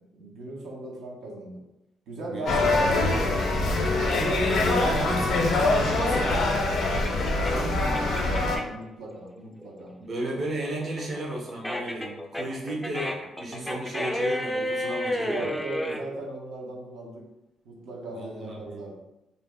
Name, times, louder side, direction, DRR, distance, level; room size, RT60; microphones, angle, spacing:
voice 1, 0.1-1.6 2.1-3.4 8.4-10.0 15.1-17.2 17.6-18.9, right 2 dB, 80° right, -3 dB, 0.7 m, -37 dB
voice 2, 2.3-3.5 4.0-6.7 7.4-8.6 10.0-15.5 18.1-18.9, right 1 dB, 45° right, -2 dB, 0.6 m, -34 dB
sound 1, 2.5-8.6, left 2 dB, 70° left, 0.5 m, -24 dB
sound 2, 5.4-8.8 9.2-16.0, left 1 dB, 10° left, 0.3 m, -32 dB
2.6 x 2.0 x 3.3 m, 0.91 s
cardioid pair, 90°, 0 cm